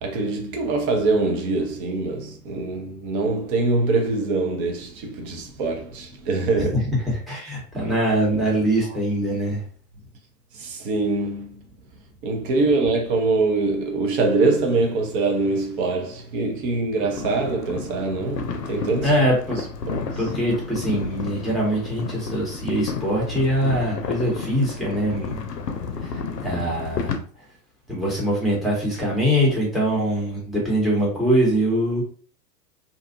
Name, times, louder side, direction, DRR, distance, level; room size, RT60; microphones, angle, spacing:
voice 1, 0.0-6.8 10.5-11.6 12.2-19.1 19.9-20.2, right 3 dB, 35° right, 0.7 m, -23 dB
voice 2, 7.0-9.6 19.0-19.6 20.2-25.4 26.0-27.2 27.9-32.0, equal, ahead, 0.9 m, -23 dB
sound 1, 17.0-27.2, left 5 dB, 80° left, 0.6 m, -32 dB
2.6 x 2.4 x 2.6 m
figure-of-eight pair, 110°, 48 cm